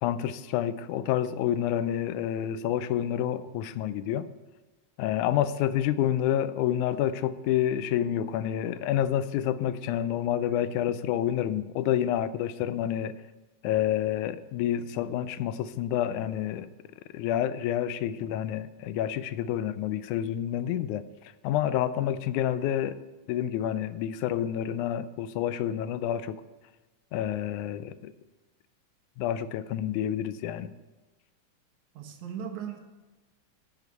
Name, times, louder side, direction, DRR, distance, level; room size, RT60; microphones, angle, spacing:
voice 1, 0.0-4.3 5.0-13.1 13.6-16.7 17.1-21.0 21.4-23.0 23.3-26.4 27.1-28.1 29.2-30.7, left 11 dB, 90° left, 2.0 m, -28 dB
voice 2, 31.9-32.8, right 8 dB, 80° right, 2.4 m, -37 dB
9.1 x 5.7 x 8.2 m
omnidirectional pair, 3.4 m